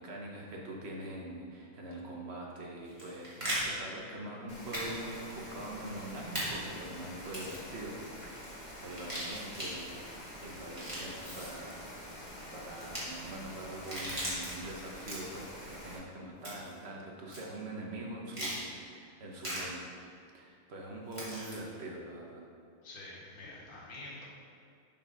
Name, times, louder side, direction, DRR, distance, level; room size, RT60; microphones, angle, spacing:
voice 1, 0.0-12.1 12.5-20.0 20.3-22.4, right 1 dB, 50° right, -1 dB, 0.8 m, -44 dB
sound 1, 2.8-3.6 4.7-4.9 5.1-5.2 6.3-6.5 7.2-7.7 8.9-9.7 10.6-11.6 12.7-13.0 13.7-14.5 15.0-15.4 16.4-16.8 17.3-17.4 18.3-18.6 19.4-19.6 21.1-21.5, right 1 dB, 15° right, 1.9 m, -38 dB
Rain, 4.5-16.0, equal, 20° left, 1.6 m, -47 dB
voice 2, 22.8-24.2, left 2 dB, 60° left, -5 dB, 2.3 m, -47 dB
7.3 x 4.5 x 5.4 m, 2.3 s
omnidirectional pair, 2.4 m